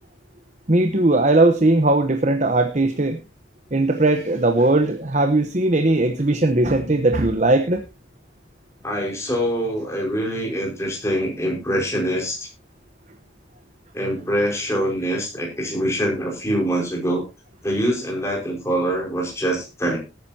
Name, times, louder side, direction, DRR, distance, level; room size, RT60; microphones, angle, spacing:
voice 1, 0.7-3.2 3.7-7.8, right 2 dB, 40° right, 7 dB, 1.0 m, -18 dB
voice 2, 8.8-12.5 13.9-17.2 17.6-20.0, equal, 15° left, -1 dB, 5.2 m, -24 dB
19.0 x 9.4 x 2.9 m, 0.28 s
head